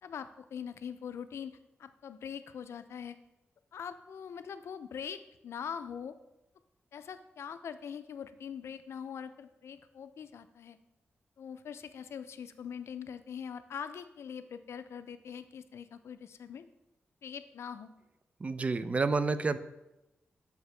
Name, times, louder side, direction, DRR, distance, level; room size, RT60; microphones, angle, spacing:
voice 1, 0.0-3.2 3.7-6.2 6.9-10.8 11.4-16.7 17.2-17.9, left 7 dB, 80° left, 12 dB, 0.3 m, -43 dB
voice 2, 18.4-19.6, right 4 dB, 30° right, 12 dB, 0.3 m, -29 dB
6.6 x 4.7 x 3.2 m, 0.94 s
wide cardioid pair, 145°, 4 cm